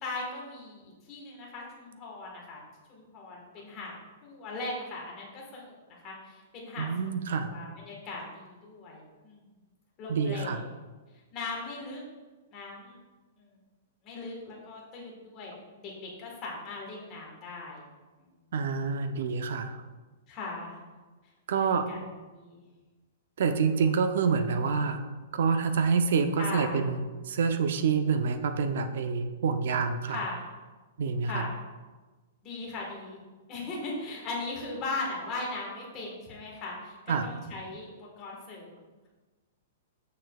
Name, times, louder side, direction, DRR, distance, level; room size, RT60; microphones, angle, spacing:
voice 1, 0.0-2.6 2.9-3.9 4.2-6.9 7.4-9.5 10.0-10.6 11.3-12.0 12.5-13.0 13.4-13.6 14.0-17.8 18.2-18.4 20.3-20.8 21.5-22.0 22.3-22.6 26.4-26.8 30.1-30.5 31.2-31.5 32.4-33.2 33.5-39.1, left 3 dB, 25° left, -2 dB, 1.3 m, -39 dB
voice 2, 6.8-7.5 10.1-10.6 18.5-19.8 21.5-21.9 23.4-25.1 25.3-30.2 31.0-31.4 37.1-37.3, right 5 dB, 60° right, 9 dB, 0.5 m, -27 dB
6.6 x 6.3 x 2.3 m, 1.3 s
hypercardioid pair, 170°, 0 cm